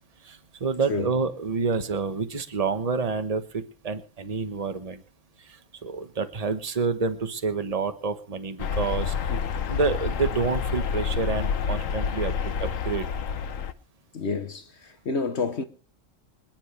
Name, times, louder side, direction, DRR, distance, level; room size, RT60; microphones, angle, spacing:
voice 1, 0.2-5.0 5.4-9.2 9.7-13.0, right 4 dB, 30° right, 1.2 m, -28 dB
sound 1, 8.6-13.7, left 6 dB, 85° left, 1.3 m, -28 dB
voice 2, 14.1-15.6, left 4 dB, 60° left, 1.3 m, -29 dB
26.0 x 10.5 x 3.3 m
omnidirectional pair, 1.3 m